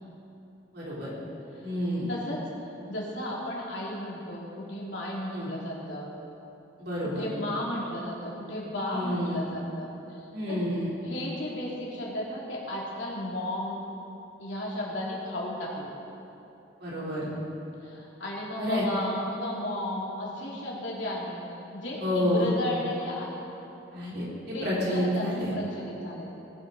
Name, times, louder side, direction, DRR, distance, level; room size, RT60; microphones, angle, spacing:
voice 1, 0.7-1.1 1.6-2.1 5.3-5.5 6.8-7.3 8.9-9.4 10.3-10.9 16.8-17.3 18.6-18.9 22.0-22.5 23.9-25.5, equal, 55° right, -6 dB, 3.7 m, -29 dB
voice 2, 2.1-2.4 2.9-6.1 7.0-10.2 10.5-10.6 11.0-13.8 14.4-15.9 17.8-21.3 21.7-23.4 24.5-26.3, left 1 dB, 70° left, -4 dB, 2.9 m, -34 dB
19.0 x 10.5 x 4.1 m, 2.9 s
head